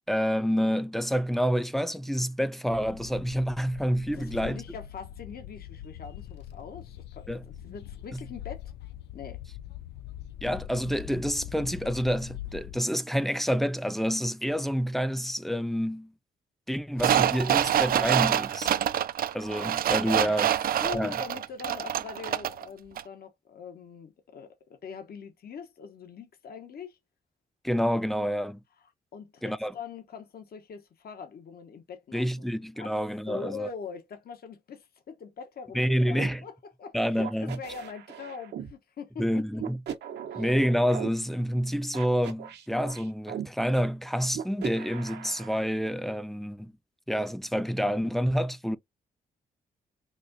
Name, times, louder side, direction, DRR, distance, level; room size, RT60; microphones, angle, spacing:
voice 1, 0.1-4.6 7.3-7.4 10.4-16.1 16.7-18.7 19.3-20.5 20.9-21.2 27.6-28.6 29.4-29.7 32.1-33.7 35.7-36.4 36.9-37.6 39.2-39.8 40.4-46.7 47.1-48.8, equal, ahead, 0.5 m, -28 dB
sound 1, 2.7-12.8, left 11 dB, 85° left, 0.4 m, -43 dB
voice 2, 4.1-8.7 9.1-9.4 20.2-20.5 20.8-27.0 29.1-32.5 32.8-33.0 33.3-39.6 40.2-40.4, left 6 dB, 60° left, 1.0 m, -42 dB
sound 2, 17.0-22.6 23.0-23.1, right 11 dB, 60° right, 0.4 m, -26 dB
sound 3, 36.2-36.3 37.2-38.7 39.6-41.1 41.9-43.5 44.3-45.6, right 9 dB, 80° right, 0.8 m, -38 dB
4.2 x 2.5 x 2.6 m
supercardioid pair, 55°, 17 cm